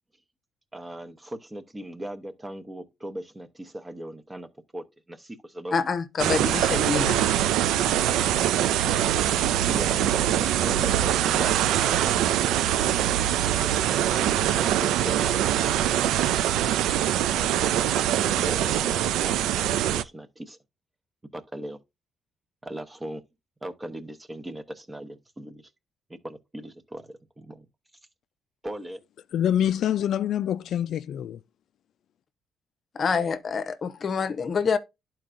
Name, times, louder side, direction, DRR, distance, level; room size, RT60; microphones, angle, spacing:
voice 1, 0.7-5.9 6.4-6.5 9.6-16.3 17.2-17.9 18.2-20.6 21.3-21.8 22.6-23.2 23.6-25.7 26.1-27.7 28.6-29.0, right 1 dB, 20° right, 0.9 m, -39 dB
voice 2, 5.7-7.2 32.9-34.8, left 5 dB, 45° left, 0.7 m, -26 dB
sound 1, 6.2-20.0, right 11 dB, 90° right, 0.4 m, -23 dB
voice 3, 29.3-31.4, left 10 dB, 70° left, 0.3 m, -25 dB
11.5 x 4.5 x 2.5 m
cardioid pair, 90°, 0 cm